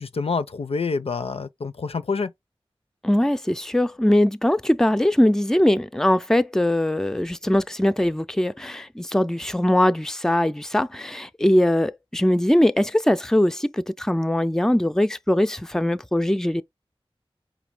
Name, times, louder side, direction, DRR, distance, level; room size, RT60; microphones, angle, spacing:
voice 1, 0.0-2.3, left 4 dB, 85° left, 0.4 m, -27 dB
voice 2, 3.0-16.6, left 1 dB, 5° left, 0.4 m, -21 dB
5.1 x 2.7 x 3.3 m
wide cardioid pair, 50°, 10 cm